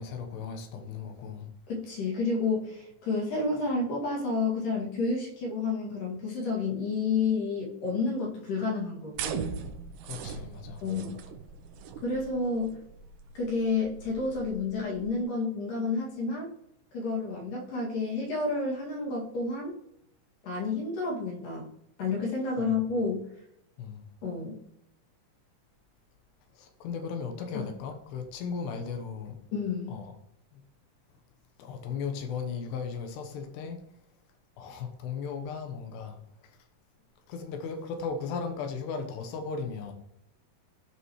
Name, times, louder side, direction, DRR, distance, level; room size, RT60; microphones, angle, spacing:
voice 1, 0.0-1.5 10.0-10.9 22.6-22.8 23.8-24.1 26.5-29.4 29.9-30.1 30.5-30.6 31.6-33.8 34.6-36.6 37.3-39.9, left 5 dB, 85° left, 3.2 m, -36 dB
voice 2, 1.7-9.5 10.8-11.2 12.0-12.8 13.4-16.5 16.9-19.7 20.4-21.7 22.0-23.3 24.2-24.6 27.5-27.7 29.5-30.0, left 3 dB, 60° left, 3.7 m, -30 dB
sound 1, 9.1-15.2, right 6 dB, 90° right, 2.9 m, -40 dB
16.5 x 5.6 x 3.1 m
omnidirectional pair, 4.7 m